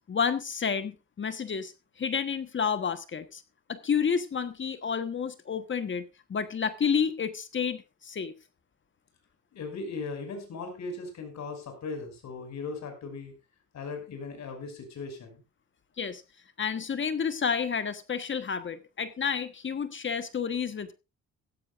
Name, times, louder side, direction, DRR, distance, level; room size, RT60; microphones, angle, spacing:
voice 1, 0.1-1.7 2.0-3.4 3.7-6.0 6.3-8.3 16.0-16.2 16.6-20.9, left 6 dB, 40° left, 10 dB, 1.3 m, -30 dB
voice 2, 9.5-13.3 13.7-15.4, left 4 dB, 65° left, 6 dB, 6.0 m, -38 dB
15.5 x 14.0 x 2.5 m, 0.27 s
cardioid pair, 90°, 30 cm